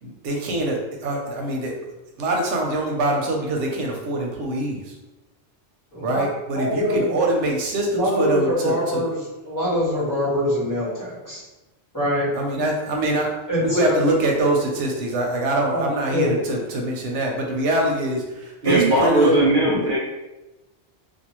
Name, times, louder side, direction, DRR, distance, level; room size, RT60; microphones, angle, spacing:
voice 1, 0.0-1.7 2.2-4.9 6.0-9.1 12.3-13.3 13.6-19.3, right 1 dB, 90° right, 0 dB, 0.9 m, -24 dB
voice 2, 5.9-6.3 6.5-7.1 7.9-9.2 9.4-11.4 11.9-12.3 13.5-14.0 15.7-16.3 18.6-18.8 19.4-19.6, equal, 20° left, -9 dB, 0.8 m, -24 dB
voice 3, 18.6-20.0, right 1 dB, 60° right, -5 dB, 0.6 m, -19 dB
2.6 x 2.2 x 2.9 m, 1.0 s
omnidirectional pair, 1.2 m